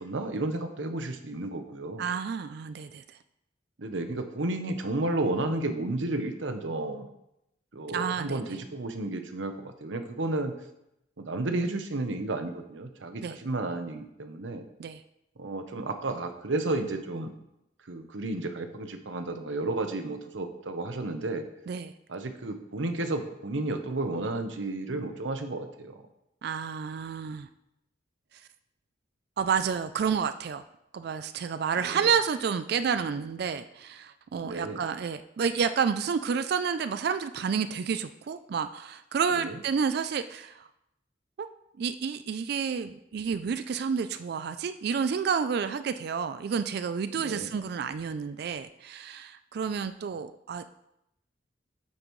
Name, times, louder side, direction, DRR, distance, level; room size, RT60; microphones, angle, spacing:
voice 1, 0.0-2.1 3.8-7.1 7.7-10.5 11.2-14.6 15.4-17.3 17.8-21.4 22.1-26.0 31.8-32.1 34.4-34.8 39.4-39.6 47.2-47.5, right 2 dB, 90° right, 7 dB, 0.9 m, -32 dB
voice 2, 2.0-3.0 7.9-8.4 13.2-13.4 14.8-15.0 21.7-21.9 26.4-27.5 29.4-30.6 30.9-40.7 41.4-41.5 41.8-50.6, right 6 dB, 55° right, 11 dB, 0.3 m, -30 dB
8.7 x 7.9 x 3.1 m, 0.84 s
head